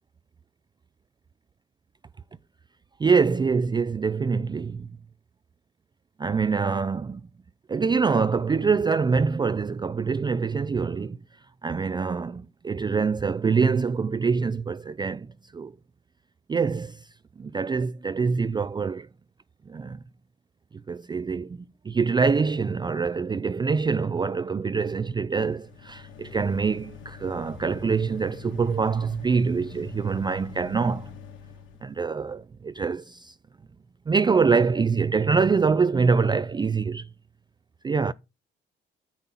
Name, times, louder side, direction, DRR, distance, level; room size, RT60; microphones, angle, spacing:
voice 1, 3.0-4.9 6.2-7.2 7.7-11.2 11.6-15.3 15.5-15.7 16.5-17.1 17.4-19.1 19.7-20.0 20.9-31.1 31.8-33.3 34.1-37.1 37.8-38.1, right 5 dB, 20° right, 0.4 m, -25 dB
sound 1, 25.4-32.0, left 6 dB, 80° left, 2.6 m, -44 dB
10.0 x 7.1 x 4.1 m
cardioid pair, 90°, 20 cm